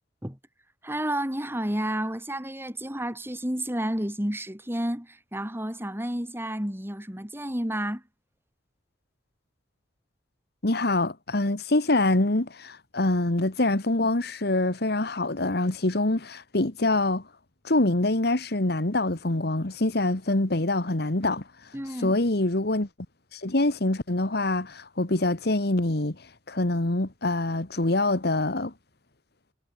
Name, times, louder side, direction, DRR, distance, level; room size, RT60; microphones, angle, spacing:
voice 1, 0.8-8.0 21.7-22.2, right 1 dB, 15° right, 5.2 m, -31 dB
voice 2, 10.6-17.2 17.6-21.4 22.0-22.9 23.3-26.2 26.5-28.7, left 2 dB, 60° left, 1.8 m, -25 dB
head